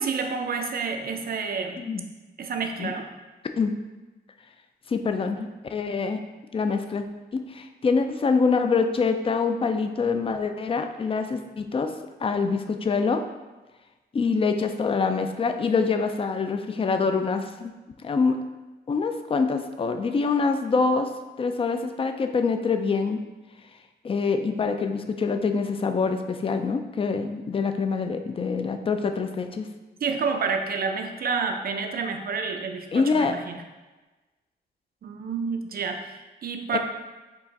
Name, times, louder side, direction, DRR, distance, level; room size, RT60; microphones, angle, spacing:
voice 1, 0.0-1.9 2.4-3.0 30.0-33.6 35.0-36.8, right 5 dB, 60° right, 5 dB, 0.5 m, -29 dB
voice 2, 4.9-6.2 6.5-7.0 7.3-11.9 12.2-13.2 14.1-17.7 18.0-18.4 18.9-21.1 21.4-23.2 24.0-29.7 32.9-33.3 36.7-36.8, left 4 dB, 30° left, 7 dB, 0.4 m, -25 dB
4.6 x 2.5 x 4.1 m, 1.2 s
cardioid pair, 90°, 18 cm